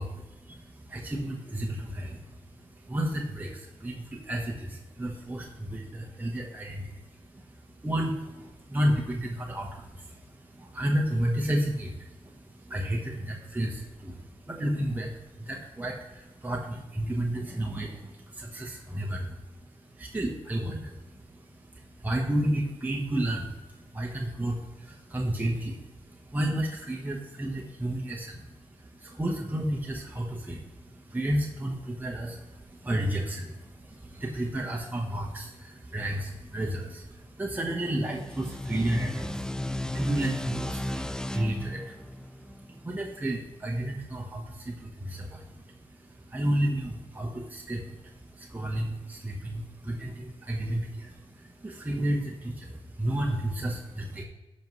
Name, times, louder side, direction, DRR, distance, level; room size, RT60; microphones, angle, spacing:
voice 1, 0.0-54.2, right 1 dB, 15° right, -2 dB, 1.1 m, -32 dB
sound 1, 38.0-43.3, left 1 dB, 5° left, 0.3 m, -35 dB
12.0 x 5.3 x 3.2 m, 1.1 s
cardioid pair, 80°, 10 cm